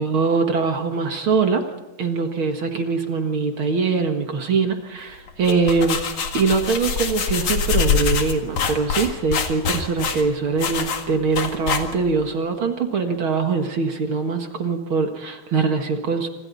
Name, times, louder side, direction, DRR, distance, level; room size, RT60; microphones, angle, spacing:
voice 1, 0.0-1.6 2.0-6.0 6.3-16.3, right 4 dB, 55° right, 5 dB, 1.4 m, -22 dB
sound 1, 5.3-12.2, left 6 dB, 50° left, 2.3 m, -24 dB
26.5 x 26.5 x 4.1 m, 1.1 s
omnidirectional pair, 4.8 m